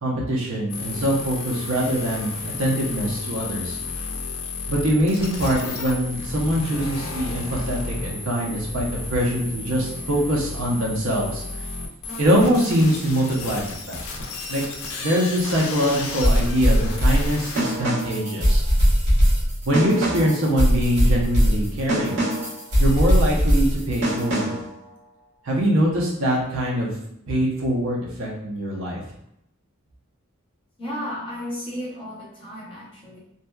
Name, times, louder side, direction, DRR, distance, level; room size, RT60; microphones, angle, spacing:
voice 1, 0.0-3.8 4.7-11.4 12.2-14.0 14.5-14.6 15.0-18.6 19.7-22.2 22.8-24.5 25.4-26.9 27.3-29.0, equal, 65° right, -2 dB, 0.6 m, -23 dB
sound 1, 0.7-17.8, left 3 dB, 70° left, 0.4 m, -33 dB
sound 2, 16.2-24.7, equal, 90° right, 1.0 m, -20 dB
voice 2, 30.8-33.2, equal, 25° left, -6 dB, 0.7 m, -33 dB
2.7 x 2.2 x 2.2 m, 0.76 s
head